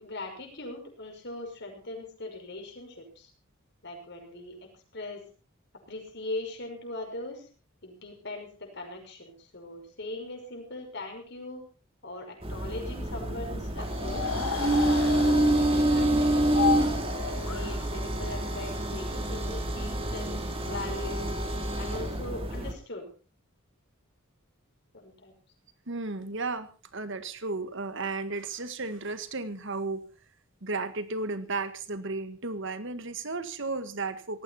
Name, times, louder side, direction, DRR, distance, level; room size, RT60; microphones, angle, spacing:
voice 1, 0.0-3.3 3.8-5.2 5.9-7.5 7.8-11.6 12.0-14.2 14.6-16.8 17.3-21.3 21.8-23.1 24.9-25.3, left 2 dB, 55° left, 3 dB, 5.7 m, -40 dB
sound 1, 12.4-22.7, right 1 dB, 25° right, 2.5 m, -27 dB
sound 2, 13.8-18.7, left 5 dB, 85° left, 0.8 m, -33 dB
voice 2, 25.9-30.1 30.6-34.4, right 3 dB, 60° right, 11 dB, 1.7 m, -34 dB
18.5 x 14.5 x 4.3 m, 0.36 s
head